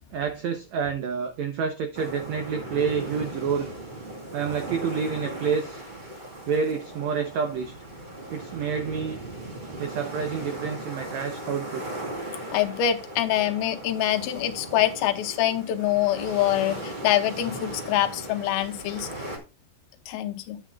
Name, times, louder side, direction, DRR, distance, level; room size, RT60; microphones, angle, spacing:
voice 1, 0.1-3.7 4.3-5.8 6.4-7.7 8.3-9.2 9.8-12.0, right 6 dB, 85° right, 1.5 m, -28 dB
sound 1, 1.9-19.4, right 1 dB, 30° right, 0.8 m, -38 dB
voice 2, 12.5-19.1 20.1-20.6, left 12 dB, 90° left, 2.7 m, -25 dB
10.0 x 8.3 x 2.3 m
omnidirectional pair, 4.3 m